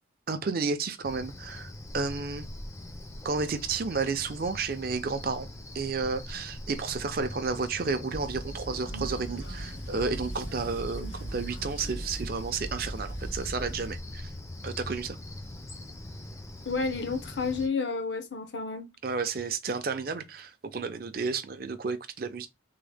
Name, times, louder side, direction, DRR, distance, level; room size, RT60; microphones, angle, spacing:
voice 1, 0.3-2.5 3.2-14.3 14.6-15.2 19.0-22.5, right 4 dB, 50° right, 0.5 m, -32 dB
Cricket, 1.0-17.7, left 1 dB, 15° left, 0.4 m, -42 dB
sound 1, 8.1-13.9, right 1 dB, 90° left, 1.7 m, -39 dB
voice 2, 16.7-18.9, left 4 dB, 65° left, 0.6 m, -30 dB
3.6 x 2.0 x 3.3 m
head